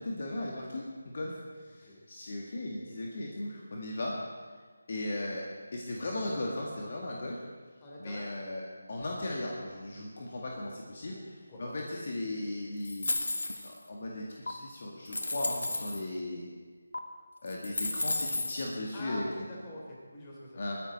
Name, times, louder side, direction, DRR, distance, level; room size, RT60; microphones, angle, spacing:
voice 1, 0.0-4.2 4.9-5.5 5.7-7.4 8.0-8.6 8.9-13.2 13.6-16.5 17.4-19.5 20.6-20.8, left 1 dB, 50° left, -2 dB, 2.0 m, -37 dB
voice 2, 1.7-2.0 7.8-8.3 11.1-12.0 18.9-20.6, left 1 dB, 20° left, -3 dB, 3.5 m, -45 dB
sound 1, 12.8-13.8 14.5-14.6 15.1-16.0 16.9-17.0 17.5-18.7, left 2 dB, 70° left, 1.3 m, -33 dB
22.0 x 9.9 x 4.3 m, 1.5 s
figure-of-eight pair, 160°, 0 cm